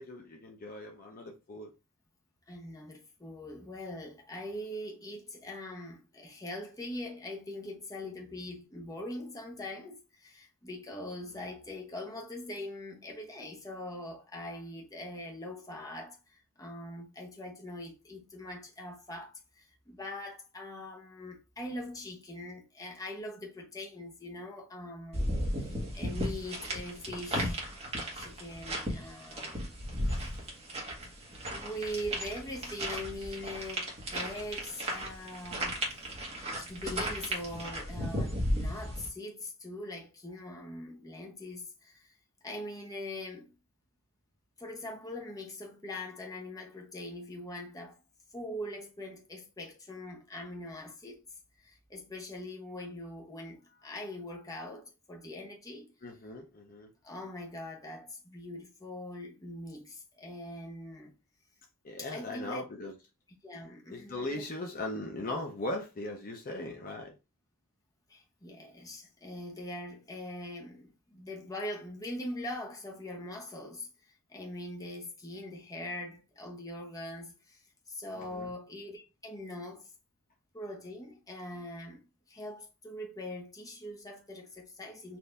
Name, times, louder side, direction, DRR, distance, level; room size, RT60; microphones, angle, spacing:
voice 1, 0.0-1.7 56.0-56.9 61.8-62.9 63.9-67.1 78.1-78.5, left 2 dB, 40° left, 0.7 m, -39 dB
voice 2, 2.5-27.6 28.1-29.8 31.5-35.8 36.6-42.1 42.4-43.5 44.6-48.0 48.3-51.2 51.6-55.9 57.0-61.1 62.0-62.6 63.4-64.5 68.1-73.9 74.3-77.6 77.9-79.8 80.5-85.2, left 1 dB, 15° left, 0.9 m, -42 dB
sound 1, 25.1-39.1, equal, 30° right, 1.4 m, -35 dB
4.3 x 2.6 x 3.4 m
head